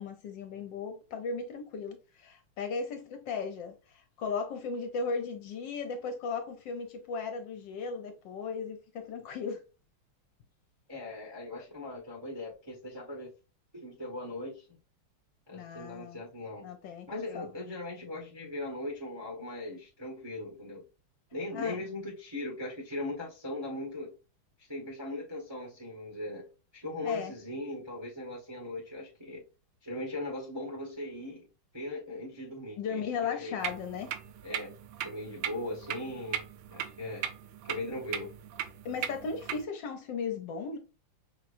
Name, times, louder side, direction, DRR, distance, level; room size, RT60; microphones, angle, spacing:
voice 1, 0.0-9.6 15.5-16.2 16.6-17.5 21.5-21.8 27.0-27.3 32.8-34.1 38.8-40.8, left 5 dB, 70° left, 1.2 m, -36 dB
voice 2, 10.9-13.3 13.7-14.8 15.5-16.7 17.1-20.8 21.3-24.1 24.6-29.4 29.8-31.5 31.7-33.0 33.3-33.6 34.4-34.7 35.0-36.4 36.7-37.3 37.6-38.3, left 1 dB, 30° right, 0.5 m, -39 dB
sound 1, 33.6-39.6, right 10 dB, 90° right, 1.5 m, -38 dB
5.7 x 3.0 x 2.5 m
omnidirectional pair, 2.4 m